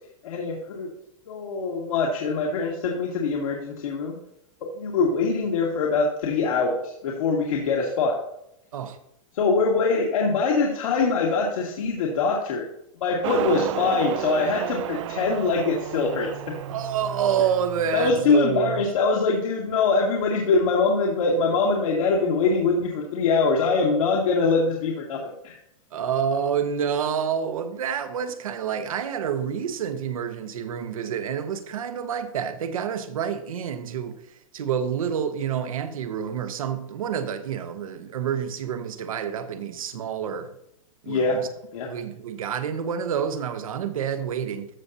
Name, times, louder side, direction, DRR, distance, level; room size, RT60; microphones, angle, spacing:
voice 1, 0.2-0.9 1.3-4.2 4.7-8.1 9.3-12.6 13.0-16.5 17.9-25.6 41.1-41.4 41.7-41.9, left 4 dB, 75° left, 1.9 m, -23 dB
Motorcycle, 13.2-18.2, right 13 dB, 60° right, 0.4 m, -32 dB
voice 2, 16.7-18.8 25.9-34.2 34.5-40.5 41.0-41.5 41.8-44.7, right 8 dB, 85° right, 1.1 m, -28 dB
13.5 x 6.8 x 2.8 m
hypercardioid pair, 140°, 18 cm